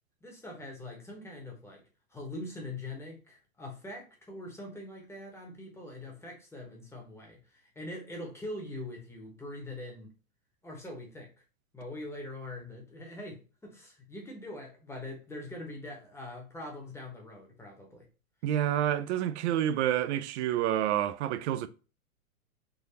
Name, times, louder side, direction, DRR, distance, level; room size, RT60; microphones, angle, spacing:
voice 1, 0.2-1.8 2.1-10.1 10.6-11.3 11.7-18.1, left 1 dB, 5° left, 1.0 m, -43 dB
voice 2, 18.4-21.7, right 11 dB, 55° right, 0.5 m, -28 dB
3.8 x 2.5 x 2.8 m
hypercardioid pair, 115°, 42 cm